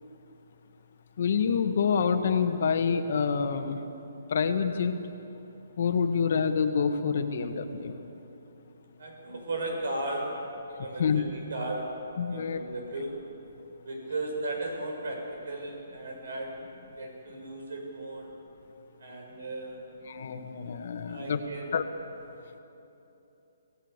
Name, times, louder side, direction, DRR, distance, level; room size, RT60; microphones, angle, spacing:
voice 1, 1.2-3.8 4.3-4.9 5.8-7.9 11.0-11.2 12.2-12.6 20.1-21.4 21.7-21.8, left 6 dB, 50° left, 7 dB, 1.7 m, -27 dB
voice 2, 9.0-10.5 10.7-13.2 13.8-16.7 17.0-18.3 19.0-19.8 21.0-21.8, right 2 dB, 70° right, 2 dB, 6.7 m, -36 dB
27.0 x 17.5 x 8.3 m, 3.0 s
hypercardioid pair, 170°, 0 cm